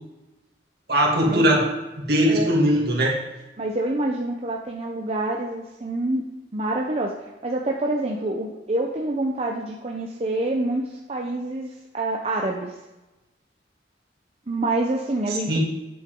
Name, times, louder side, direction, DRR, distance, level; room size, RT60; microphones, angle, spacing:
voice 1, 0.9-1.7 2.0-3.1 15.5-15.6, equal, 60° right, -2 dB, 2.3 m, -20 dB
voice 2, 3.6-6.2 6.5-7.1 7.4-11.7 11.9-12.7 14.5-15.6, right 2 dB, 35° right, 0 dB, 0.7 m, -26 dB
9.7 x 8.0 x 3.7 m, 1.0 s
head